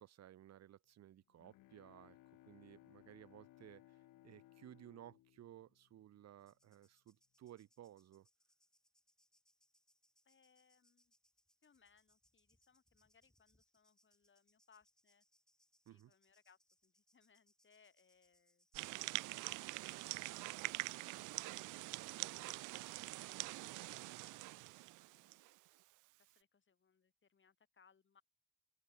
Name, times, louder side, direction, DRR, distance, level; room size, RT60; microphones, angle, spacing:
voice 1, 0.0-2.2 2.4-8.3 15.9-16.1, right 12 dB, 60° right, 0.8 m, -58 dB
Bowed string instrument, 1.1-6.5, left 16 dB, 85° left, 1.4 m, -65 dB
sound 1, 6.4-24.0, equal, ahead, 3.5 m, -78 dB
voice 2, 10.3-11.1 11.6-15.2 15.9-18.7 19.1-20.8 21.2-23.0 23.2-24.5 25.0-25.5 26.2-28.2, left 6 dB, 40° left, 3.7 m, -72 dB
sound 2, 18.7-25.5, right 20 dB, 85° right, 0.4 m, -45 dB
open air
cardioid pair, 90°, 30 cm